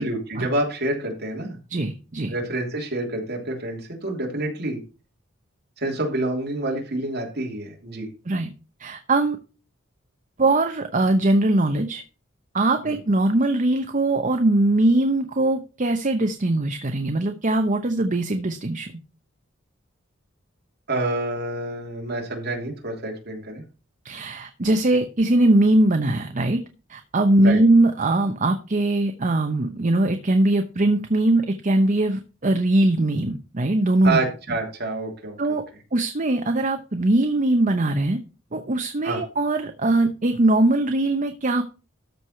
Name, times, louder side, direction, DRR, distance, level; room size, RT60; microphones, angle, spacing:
voice 1, 0.0-1.6 2.3-4.8 5.8-8.1 12.8-13.0 20.9-23.6 27.4-27.6 34.0-35.6 39.0-39.2, right 2 dB, 55° right, 1 dB, 3.1 m, -28 dB
voice 2, 1.7-2.3 8.3-8.5 8.8-9.4 10.4-12.0 12.5-18.9 24.0-26.6 26.9-34.2 35.4-35.6 35.9-38.2 38.5-41.6, right 2 dB, 40° right, 7 dB, 0.9 m, -21 dB
13.5 x 4.8 x 5.7 m, 0.34 s
head